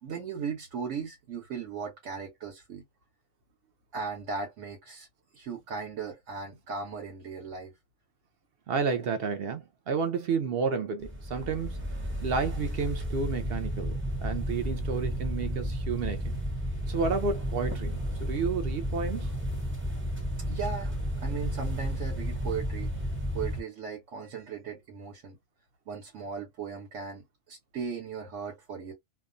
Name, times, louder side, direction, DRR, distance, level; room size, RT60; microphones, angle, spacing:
voice 1, 0.0-2.8 3.9-5.1 5.3-7.7 11.3-11.4 20.5-22.9 23.3-25.4 25.9-28.9, right 5 dB, 80° right, 1.1 m, -37 dB
voice 2, 8.7-11.8 12.2-16.4 16.9-19.3, right 5 dB, 60° right, 0.7 m, -31 dB
sound 1, 11.0-23.6, equal, 15° right, 0.5 m, -32 dB
2.4 x 2.2 x 2.4 m
omnidirectional pair, 1.2 m